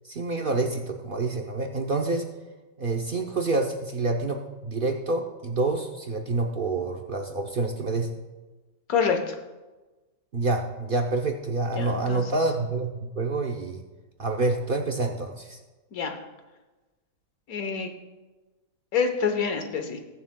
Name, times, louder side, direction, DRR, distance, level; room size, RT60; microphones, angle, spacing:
voice 1, 0.0-2.3 2.8-8.1 10.3-13.8 14.2-15.6, right 3 dB, 60° right, 3 dB, 0.5 m, -27 dB
voice 2, 8.9-9.3 11.8-12.2 15.9-16.1 17.5-17.9 18.9-20.0, left 6 dB, 60° left, 6 dB, 1.4 m, -26 dB
20.5 x 7.1 x 2.2 m, 1.2 s
omnidirectional pair, 1.8 m